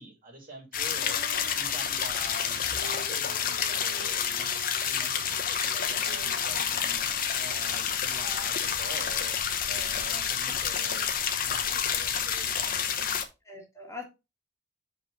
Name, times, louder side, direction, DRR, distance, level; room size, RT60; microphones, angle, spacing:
voice 1, 0.0-7.0 7.4-9.4 9.7-11.0 11.4-13.1, right 1 dB, 50° right, 2.8 m, -46 dB
sound 1, 0.7-13.2, left 8 dB, 50° left, 1.1 m, -29 dB
Female singing, 0.9-8.0, left 2 dB, 65° left, 2.7 m, -48 dB
voice 2, 13.4-14.1, left 3 dB, 15° left, 2.0 m, -42 dB
7.4 x 5.4 x 3.9 m
head